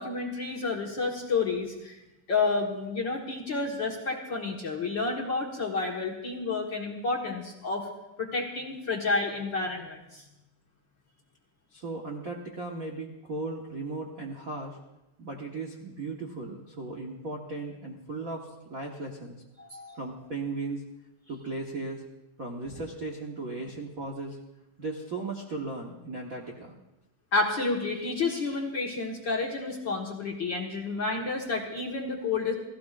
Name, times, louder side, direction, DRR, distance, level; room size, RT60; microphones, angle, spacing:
voice 1, 0.0-2.0 2.3-7.9 8.2-10.2 19.6-20.0 27.3-32.5, left 3 dB, 45° left, -1 dB, 1.6 m, -30 dB
voice 2, 11.7-14.8 15.2-19.4 19.9-20.8 21.3-22.0 22.4-24.4 24.8-26.8, right 3 dB, 65° right, -1 dB, 0.8 m, -36 dB
29.0 x 16.5 x 2.5 m, 0.96 s
omnidirectional pair, 3.9 m